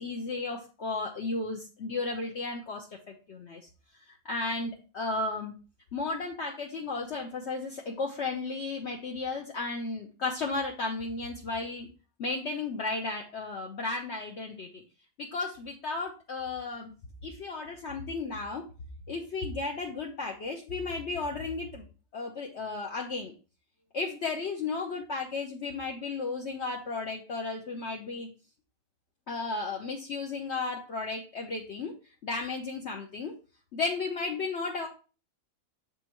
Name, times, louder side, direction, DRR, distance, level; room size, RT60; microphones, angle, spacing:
voice 1, 0.0-3.6 4.2-5.5 5.9-11.9 12.2-14.8 15.2-16.9 17.2-18.6 19.1-21.8 22.1-23.3 23.9-28.3 29.3-31.9 32.2-33.3 33.7-34.9, left 3 dB, 55° left, 0 dB, 1.1 m, -34 dB
7.5 x 5.3 x 3.0 m, 0.35 s
omnidirectional pair, 1.5 m